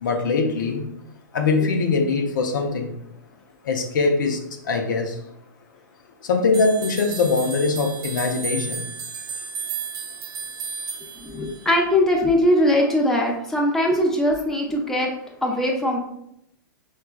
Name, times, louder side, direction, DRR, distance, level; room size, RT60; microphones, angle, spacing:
voice 1, 0.0-0.8 1.3-2.9 3.7-4.4 4.7-5.1 6.3-8.8, left 4 dB, 75° left, 3 dB, 0.6 m, -22 dB
sound 1, 6.5-11.8, right 5 dB, 45° right, 0.8 m, -33 dB
voice 2, 11.2-15.1 15.4-16.0, left 1 dB, 5° left, -1 dB, 0.7 m, -21 dB
4.7 x 2.3 x 2.2 m, 0.75 s
hypercardioid pair, 110°, 10 cm